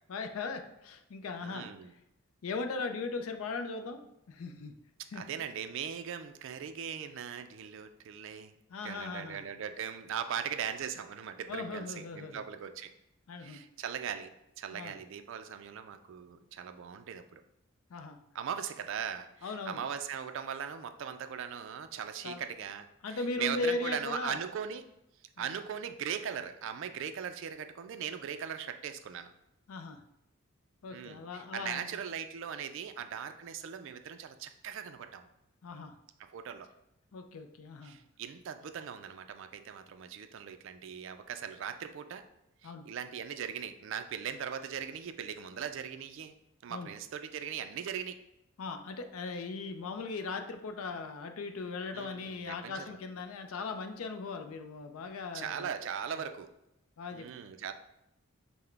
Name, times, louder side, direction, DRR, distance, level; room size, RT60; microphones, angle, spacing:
voice 1, 0.1-1.7 2.4-4.0 4.3-4.7 5.1-5.3 8.7-9.4 11.5-12.4 13.3-13.6 14.7-14.9 17.9-18.2 19.4-19.8 22.2-22.4 23.0-24.4 25.4-25.5 29.7-30.0 30.8-32.0 35.6-35.9 37.1-38.0 42.6-42.9 46.7-46.9 48.6-55.7 57.0-57.3, left 3 dB, 75° left, 7 dB, 0.4 m, -38 dB
voice 2, 1.4-1.9 5.1-8.5 8.8-12.9 13.4-14.3 14.6-17.4 18.3-24.9 25.4-29.3 30.9-35.3 36.2-36.7 37.8-42.2 42.6-46.3 46.6-48.2 51.9-53.0 55.3-56.5 57.1-57.7, right 8 dB, 60° right, 8 dB, 0.3 m, -39 dB
5.7 x 2.1 x 3.3 m, 0.84 s
head